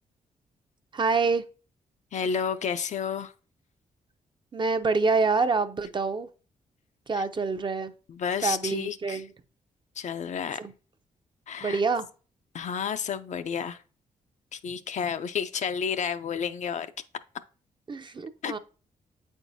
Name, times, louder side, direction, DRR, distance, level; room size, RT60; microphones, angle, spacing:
voice 1, 0.9-1.4 4.5-6.3 7.1-7.9 8.4-9.3 10.6-10.7 11.6-12.1 17.9-18.6, right 4 dB, 35° right, 0.5 m, -26 dB
voice 2, 2.1-3.3 7.1-7.2 8.1-9.2 10.0-10.6 11.5-11.8 12.5-13.8 14.5-16.9 18.4-18.5, left 7 dB, 55° left, 0.4 m, -31 dB
8.0 x 4.5 x 2.6 m
cardioid pair, 85°, 14 cm